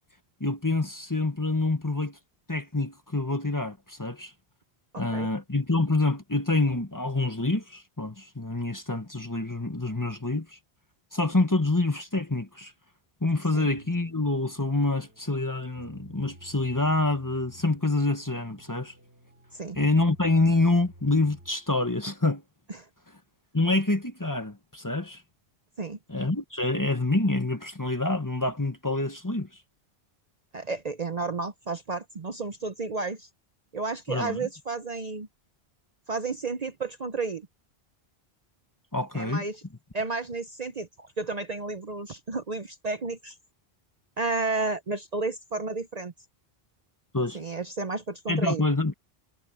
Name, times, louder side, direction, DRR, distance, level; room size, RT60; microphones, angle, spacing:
voice 1, 0.4-2.2 2.5-4.3 5.0-10.5 11.1-12.7 13.2-18.9 19.8-22.4 23.5-25.2 26.1-29.5 34.1-34.5 38.9-39.4 47.1-47.4 48.3-48.9, left 2 dB, 20° left, 1.2 m, -26 dB
voice 2, 4.9-5.3 13.5-13.7 19.5-19.8 25.8-26.0 30.5-33.3 33.7-35.3 36.1-37.5 39.1-39.6 39.9-43.4 44.2-46.1 47.3-48.6, right 3 dB, 45° right, 0.8 m, -32 dB
sound 1, 13.7-21.8, right 1 dB, 85° right, 5.0 m, -53 dB
omnidirectional pair, 1.1 m